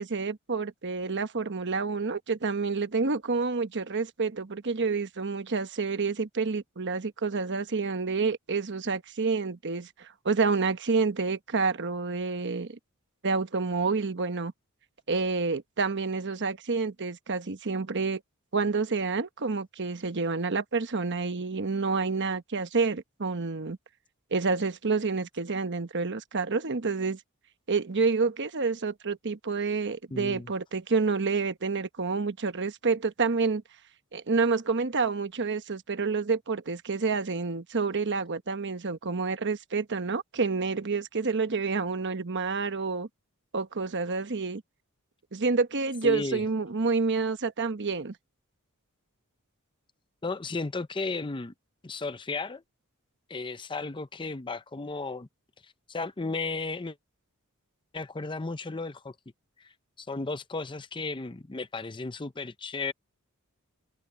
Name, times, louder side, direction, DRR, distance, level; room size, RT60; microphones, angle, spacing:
voice 1, 0.0-12.8 13.2-14.5 15.1-18.2 18.5-23.8 24.3-27.2 27.7-33.6 34.1-43.1 43.5-44.6 45.3-48.1, right 4 dB, 50° right, 1.1 m, -28 dB
voice 2, 30.1-30.5 46.0-46.4 50.2-51.5 51.8-52.6 53.3-55.3 55.9-57.0 57.9-59.1 59.6-59.7 60.0-62.9, left 3 dB, 20° left, 0.6 m, -34 dB
head